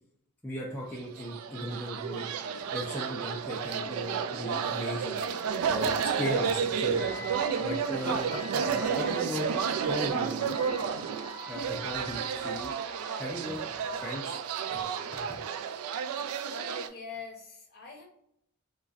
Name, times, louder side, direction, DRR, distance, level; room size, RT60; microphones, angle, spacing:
voice 1, 0.4-2.3 2.7-5.3 5.7-7.3 7.6-10.6 11.5-12.7 13.2-13.6 14.0-14.4 15.1-15.2, equal, 10° left, -4 dB, 0.4 m, -37 dB
sound 1, 0.8-3.5 3.8-4.1 4.3-5.2 5.6-6.2 6.8-11.1 12.0-12.5 13.3-14.0 14.7-14.8, right 1 dB, 50° right, 1.1 m, -46 dB
sound 2, 1.1-16.9, right 6 dB, 80° right, 0.3 m, -31 dB
Wind instrument woodwind instrument, 6.9-13.4, left 3 dB, 65° left, 0.6 m, -46 dB
voice 2, 16.4-18.0, left 4 dB, 45° left, 0 dB, 0.9 m, -43 dB
3.8 x 2.3 x 2.4 m, 0.72 s
head